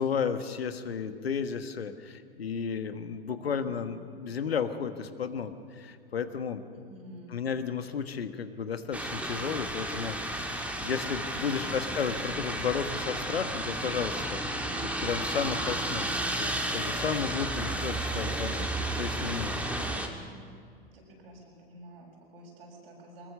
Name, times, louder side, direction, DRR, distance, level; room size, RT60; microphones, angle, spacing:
voice 1, 0.0-6.6 7.3-18.7 19.0-19.8, left 6 dB, 80° left, 10 dB, 1.4 m, -33 dB
voice 2, 3.4-3.8 6.7-7.4 11.5-11.9 17.6-17.7 19.8-19.9 20.1-20.3 20.9-23.3, equal, 70° right, -2 dB, 7.4 m, -49 dB
sound 1, 8.9-20.1, right 1 dB, 5° right, 2.1 m, -32 dB
23.0 x 20.5 x 6.9 m, 2.3 s
figure-of-eight pair, 90°, 30 cm